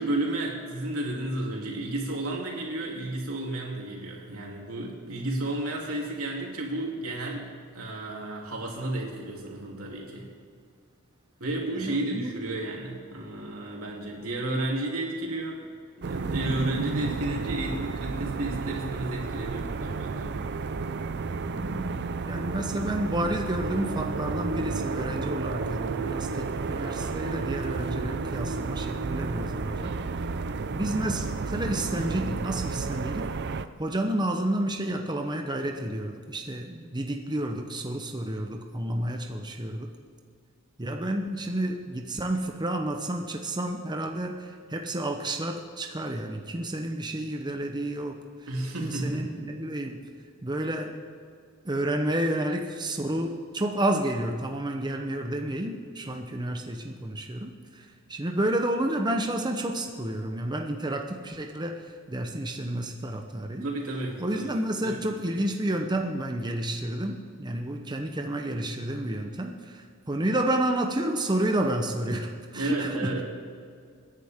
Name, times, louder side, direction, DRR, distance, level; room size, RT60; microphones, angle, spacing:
voice 1, 0.0-10.3 11.4-15.6 16.0-20.3 48.5-49.3 63.6-65.0 65.3-65.4 72.5-73.2, right 1 dB, 90° right, -2 dB, 3.1 m, -32 dB
voice 2, 11.8-12.3 21.5-29.9 30.7-33.3 33.8-39.9 40.8-48.2 48.8-50.1 50.4-51.0 51.6-63.7 64.2-73.2, right 1 dB, 20° right, 3 dB, 0.9 m, -30 dB
sound 1, 16.0-33.6, right 4 dB, 55° right, 0.5 m, -32 dB
26.0 x 10.5 x 3.7 m, 2.2 s
head